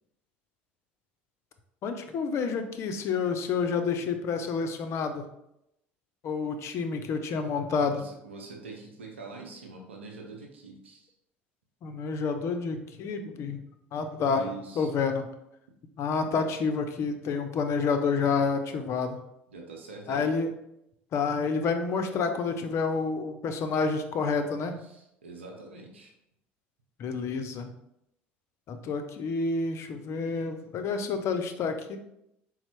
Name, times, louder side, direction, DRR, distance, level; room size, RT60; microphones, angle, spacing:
voice 1, 1.8-5.2 6.2-8.0 11.8-13.6 13.9-14.5 14.7-15.3 16.0-19.2 20.1-20.5 21.1-24.8 27.0-27.7 28.7-32.0, left 5 dB, 50° left, 7 dB, 0.5 m, -29 dB
voice 2, 7.8-11.1 14.2-14.9 19.5-20.3 24.8-26.1, right 4 dB, 90° right, 0 dB, 0.7 m, -44 dB
4.2 x 2.0 x 4.4 m, 0.82 s
hypercardioid pair, 70°, 6 cm